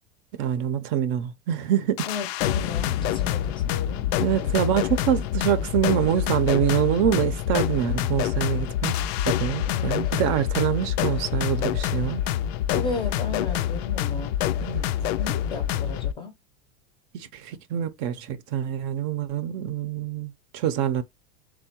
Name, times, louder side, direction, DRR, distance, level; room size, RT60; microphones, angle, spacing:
voice 1, 0.4-2.1 4.2-9.0 9.3-12.3 14.6-14.9 17.1-21.0, right 10 dB, 50° right, 0.5 m, -25 dB
sound 1, 2.0-16.1, left 11 dB, 75° left, 0.5 m, -26 dB
voice 2, 2.0-4.1 9.6-10.0 12.7-14.3 15.2-16.3, left 4 dB, 15° left, 0.5 m, -34 dB
3.6 x 2.2 x 4.2 m
supercardioid pair, 160°, 32 cm